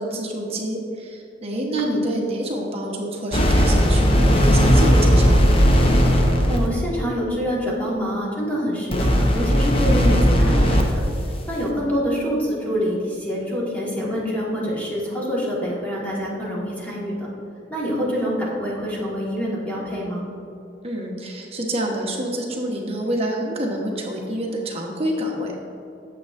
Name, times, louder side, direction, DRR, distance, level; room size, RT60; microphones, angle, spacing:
voice 1, 0.0-5.4 20.8-25.6, right 1 dB, 35° right, -1 dB, 1.0 m, -27 dB
sound 1, 3.3-6.7 8.9-10.9, equal, 30° left, 0.7 m, -16 dB
voice 2, 6.5-10.9 11.5-17.3 17.7-20.2, equal, 10° left, -6 dB, 1.6 m, -26 dB
8.9 x 7.4 x 2.5 m, 2.7 s
head